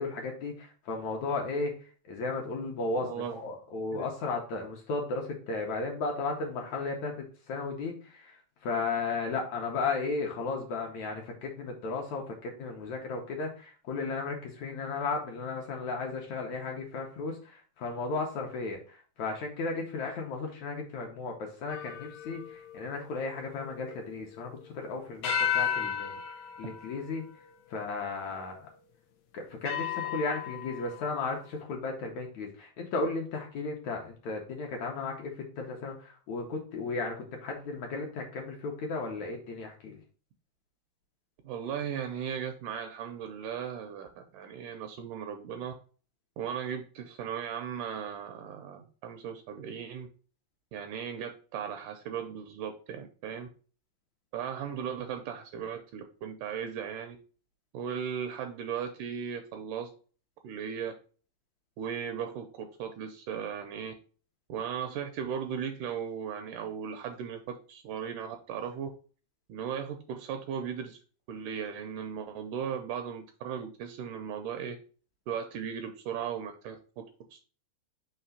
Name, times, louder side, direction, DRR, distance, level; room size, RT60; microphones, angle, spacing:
voice 1, 0.0-1.7 2.1-7.2 7.5-8.3 8.6-26.1 26.6-27.2 27.7-28.7 29.3-40.0, left 3 dB, 70° left, 1 dB, 1.9 m, -35 dB
voice 2, 3.0-3.4 3.9-4.1 26.6-26.7 41.4-45.7 46.4-50.1 50.7-53.5 54.3-57.2 57.7-59.9 60.4-60.9 61.8-63.9 64.5-68.9 69.5-71.0 71.3-74.8 75.3-77.0 77.3-77.4, right 8 dB, 80° right, 6 dB, 1.9 m, -37 dB
sound 1, 21.7-24.7 25.2-28.0 28.7-28.8 29.7-31.2, left 8 dB, 85° left, 1.5 m, -35 dB
5.8 x 3.0 x 5.5 m, 0.39 s
omnidirectional pair, 4.1 m